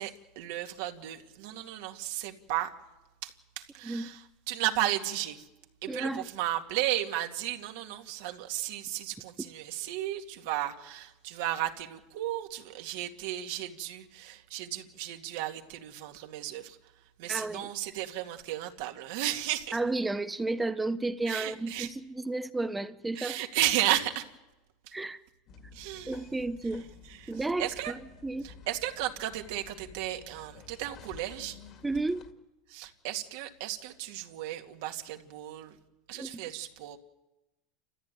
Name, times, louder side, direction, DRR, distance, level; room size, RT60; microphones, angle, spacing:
voice 1, 0.0-2.7 3.2-5.5 5.8-16.8 17.2-19.8 21.3-21.9 23.1-24.3 25.7-26.2 27.1-27.3 27.6-27.9 28.4-31.6 32.7-35.7 36.1-37.0, right 13 dB, 65° right, 2.3 m, -34 dB
voice 2, 5.9-6.3 17.3-17.7 19.7-23.4 24.9-25.2 26.1-26.8 27.3-27.9 28.2-28.4 31.8-32.2 36.2-36.4, right 2 dB, 10° right, 0.7 m, -32 dB
sound 1, 25.5-32.3, left 5 dB, 40° left, 2.1 m, -52 dB
29.5 x 14.5 x 9.3 m
supercardioid pair, 145°, 0 cm